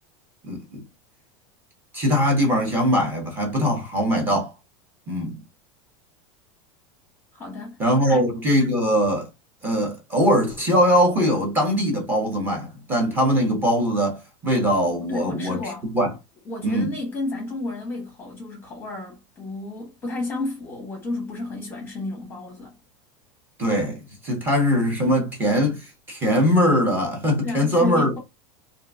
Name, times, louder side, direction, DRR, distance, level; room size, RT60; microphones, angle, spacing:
voice 1, 0.4-0.8 1.9-4.5 5.1-5.4 7.8-9.3 9.6-15.6 15.9-16.1 16.6-16.9 23.6-24.0 24.2-28.2, equal, 15° right, 0.9 m, -21 dB
voice 2, 7.3-8.3 15.0-15.9 16.4-22.7 27.4-28.2, left 2 dB, 15° left, 1.0 m, -32 dB
2.9 x 2.5 x 2.4 m
supercardioid pair, 165°, 15 cm